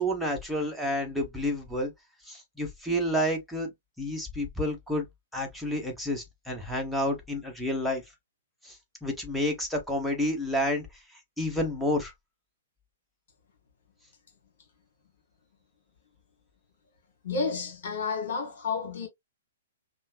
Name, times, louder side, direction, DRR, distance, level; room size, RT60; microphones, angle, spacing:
voice 1, 0.0-1.9 2.3-3.7 4.0-5.1 5.3-8.0 8.6-10.9 11.4-12.1, equal, ahead, 1.1 m, -30 dB
voice 2, 17.2-19.1, left 4 dB, 55° left, 1.2 m, -31 dB
5.5 x 2.0 x 2.3 m
figure-of-eight pair, 115°, 0 cm